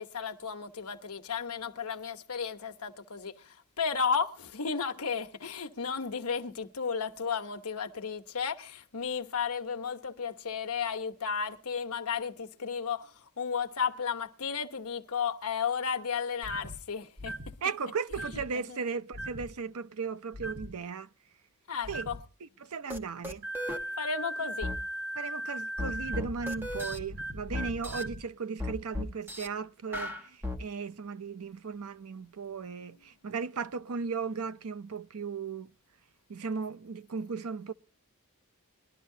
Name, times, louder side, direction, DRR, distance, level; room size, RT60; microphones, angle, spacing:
voice 1, 0.0-17.5 18.5-18.8 21.7-22.2 24.0-24.7, left 6 dB, 80° left, 1.1 m, -34 dB
sound 1, 16.4-16.8 17.2-17.5 18.1-18.5 19.1-19.5 20.3-20.7 21.8-22.2 23.4-28.2, right 1 dB, 50° right, 1.8 m, -38 dB
voice 2, 17.6-21.1 21.9-22.1 22.6-23.5 25.2-35.7 36.3-37.7, right 5 dB, 80° right, 0.6 m, -36 dB
sound 2, 22.9-23.0 23.2-23.8 24.6-24.8 25.8-27.0 27.5-28.0 28.6-29.5 29.9-30.6, left 2 dB, 10° right, 1.2 m, -35 dB
21.5 x 12.0 x 2.7 m
head